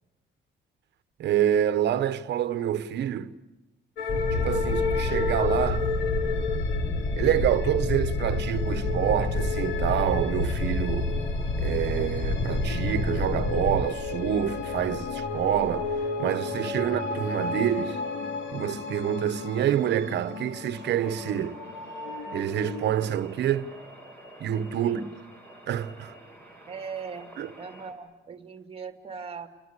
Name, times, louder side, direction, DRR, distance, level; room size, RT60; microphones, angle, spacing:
voice 1, 1.2-3.3 4.3-5.9 7.2-11.1 11.6-15.9 16.2-18.0 18.5-21.6 22.3-23.7 24.4-25.0 25.7-26.1 27.4-27.5, right 10 dB, 65° right, 1.3 m, -27 dB
sound 1, 4.0-23.0, left 5 dB, 90° left, 2.2 m, -33 dB
sound 2, 4.1-13.8, left 2 dB, 25° left, 1.7 m, -28 dB
sound 3, 20.7-27.9, right 1 dB, 10° left, 5.6 m, -49 dB
voice 2, 26.7-29.5, right 5 dB, 30° right, 2.4 m, -39 dB
29.5 x 22.5 x 8.4 m
cardioid pair, 165°, 19 cm